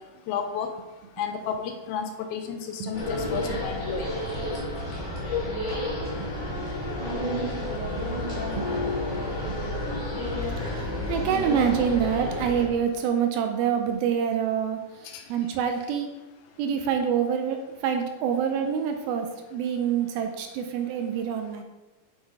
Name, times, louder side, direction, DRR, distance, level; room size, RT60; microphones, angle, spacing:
voice 1, 0.3-0.7 1.2-4.1 15.1-15.2, left 7 dB, 80° left, 5 dB, 2.3 m, -32 dB
sound 1, 2.9-12.7, left 1 dB, 15° left, 1.9 m, -30 dB
voice 2, 11.1-14.8 15.3-16.1 16.6-21.6, right 8 dB, 80° right, 5 dB, 2.3 m, -26 dB
7.2 x 6.2 x 4.8 m, 1.1 s
omnidirectional pair, 4.6 m